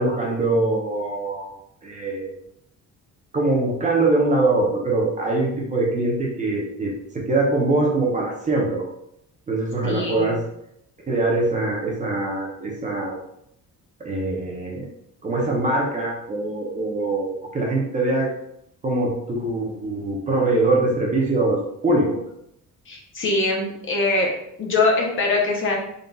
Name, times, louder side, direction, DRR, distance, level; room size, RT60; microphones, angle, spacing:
voice 1, 0.0-1.5 1.8-2.3 3.3-8.9 9.5-10.4 11.1-13.2 14.0-14.9 15.2-18.3 18.8-22.2, right 2 dB, 20° right, -2 dB, 0.6 m, -23 dB
voice 2, 9.8-10.3 22.9-24.3 24.6-25.8, left 3 dB, 35° left, -1 dB, 0.7 m, -22 dB
4.0 x 3.9 x 2.3 m, 0.75 s
cardioid pair, 175°, 35 cm